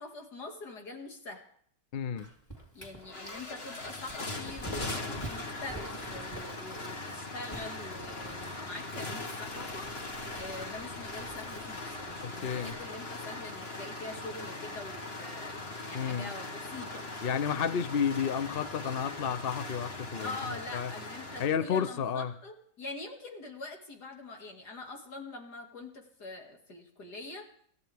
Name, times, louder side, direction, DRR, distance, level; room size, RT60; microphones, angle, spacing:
voice 1, 0.0-1.4 2.7-17.3 20.2-27.5, left 2 dB, 70° left, 2.9 m, -44 dB
voice 2, 1.9-2.3 12.2-12.7 15.9-16.3 17.2-20.3 20.7-20.9 21.4-22.3, left 7 dB, 55° left, 0.7 m, -31 dB
Dog, 2.2-12.7, right 1 dB, 10° left, 2.9 m, -48 dB
sound 1, 2.6-2.7 2.9-21.5, left 2 dB, 35° left, 1.8 m, -40 dB
27.0 x 13.5 x 3.5 m
omnidirectional pair, 1.8 m